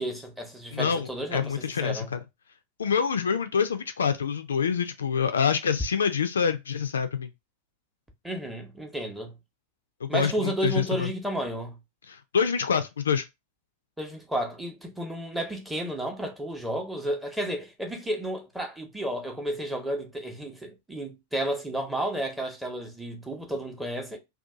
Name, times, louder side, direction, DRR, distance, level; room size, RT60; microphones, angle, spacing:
voice 1, 0.0-2.1 8.2-9.4 10.1-11.8 14.0-24.2, right 1 dB, 5° right, 0.8 m, -32 dB
voice 2, 0.7-2.2 2.8-7.3 10.0-11.1 12.1-13.2, left 6 dB, 70° left, 0.4 m, -26 dB
2.7 x 2.4 x 3.5 m
figure-of-eight pair, 90°, 0 cm